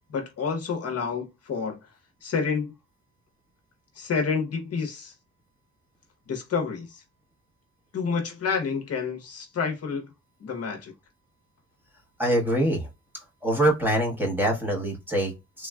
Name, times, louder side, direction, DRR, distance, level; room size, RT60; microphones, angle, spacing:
voice 1, 0.1-1.8 2.2-2.7 4.0-5.1 6.3-7.0 7.9-10.1 10.4-10.9, left 5 dB, 50° left, 0.8 m, -29 dB
voice 2, 12.2-12.9 13.4-15.7, right 1 dB, 5° right, 1.0 m, -24 dB
3.2 x 2.3 x 2.3 m
cardioid pair, 95°, 31 cm